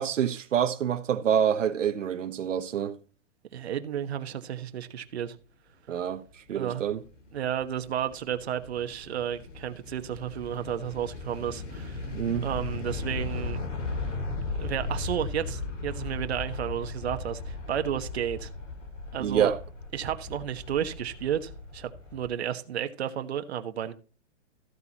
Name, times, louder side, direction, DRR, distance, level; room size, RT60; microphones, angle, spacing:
voice 1, 0.0-3.0 5.9-7.0 12.1-12.5 19.2-19.6, right 8 dB, 85° right, 1.1 m, -27 dB
voice 2, 3.5-5.3 6.5-6.8 7.3-12.1 12.4-13.6 14.6-18.5 19.1-19.5 19.9-23.9, right 9 dB, 60° right, 1.3 m, -32 dB
sound 1, 6.8-22.3, left 3 dB, 85° left, 5.2 m, -37 dB
14.5 x 8.3 x 3.0 m
hypercardioid pair, 175°, 37 cm